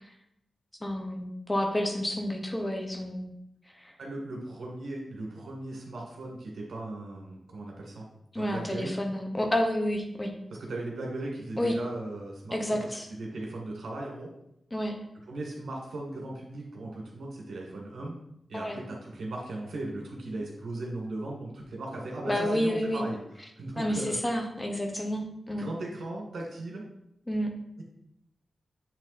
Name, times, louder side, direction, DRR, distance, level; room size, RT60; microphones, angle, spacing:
voice 1, 0.8-3.3 3.8-3.9 8.3-10.3 11.6-11.7 12.5-13.1 14.7-15.0 18.5-18.8 22.3-23.0 23.8-25.7 27.3-27.5, left 1 dB, 20° left, 3 dB, 1.2 m, -30 dB
voice 2, 4.0-8.0 8.4-8.9 10.6-14.3 15.3-18.2 18.5-23.2 23.6-24.1 25.6-26.8, right 2 dB, 90° right, -1 dB, 2.0 m, -37 dB
8.4 x 3.2 x 4.2 m, 0.78 s
wide cardioid pair, 80°, 0 cm